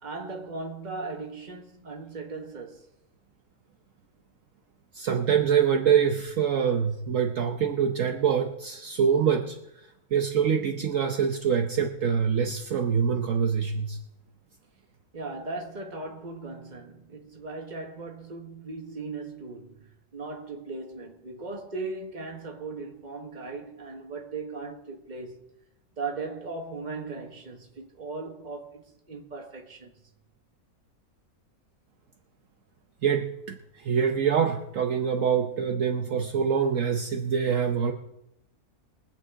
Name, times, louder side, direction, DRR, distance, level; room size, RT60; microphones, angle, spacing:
voice 1, 0.0-2.8 15.1-25.4 26.0-29.9, right 3 dB, 30° right, 1.5 m, -38 dB
voice 2, 4.9-9.6 10.1-14.0 33.0-37.9, right 7 dB, 65° right, 1.2 m, -25 dB
23.0 x 8.2 x 3.7 m
omnidirectional pair, 1.6 m